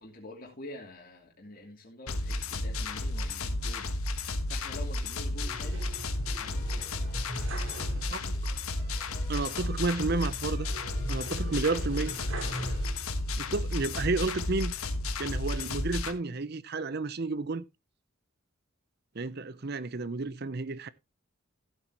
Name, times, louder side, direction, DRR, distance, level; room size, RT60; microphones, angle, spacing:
voice 1, 0.0-3.9 4.5-6.0 6.3-7.0, left 1 dB, 40° left, 2.8 m, -46 dB
sound 1, 2.1-16.1, left 2 dB, 80° left, 1.2 m, -32 dB
sound 2, 5.4-8.4 8.7-8.8 10.6-13.4 13.9-14.7, right 1 dB, 65° right, 3.5 m, -42 dB
sound 3, 6.5-11.9, left 2 dB, 15° left, 3.9 m, -55 dB
voice 2, 7.9-8.3 9.3-10.7 11.1-12.1 13.4-14.7 15.2-17.6 19.1-20.9, right 3 dB, 50° right, 0.6 m, -31 dB
15.0 x 7.8 x 3.0 m
head